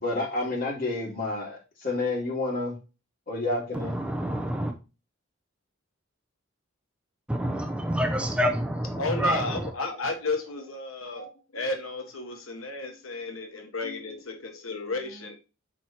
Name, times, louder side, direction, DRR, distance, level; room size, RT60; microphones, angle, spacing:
voice 1, 0.0-2.8 3.3-4.0, left 2 dB, 45° left, 3.2 m, -29 dB
voice 2, 3.9-4.7 7.3-9.4, equal, 5° right, 0.6 m, -27 dB
voice 3, 9.0-15.4, left 3 dB, 90° left, 1.2 m, -33 dB
6.4 x 4.4 x 4.2 m
head